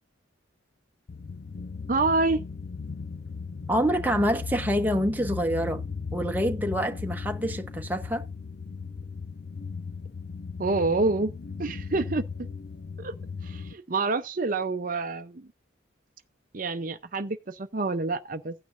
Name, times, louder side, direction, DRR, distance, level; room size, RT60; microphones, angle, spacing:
sound 1, 1.1-13.7, left 5 dB, 55° left, 0.5 m, -37 dB
voice 1, 1.9-2.4 10.6-11.3 11.6-12.2 13.0-13.1 13.4-15.5 16.5-18.5, right 3 dB, 45° right, 0.7 m, -27 dB
voice 2, 3.7-5.8 6.1-8.2, equal, 10° right, 1.0 m, -26 dB
15.5 x 9.4 x 2.6 m
head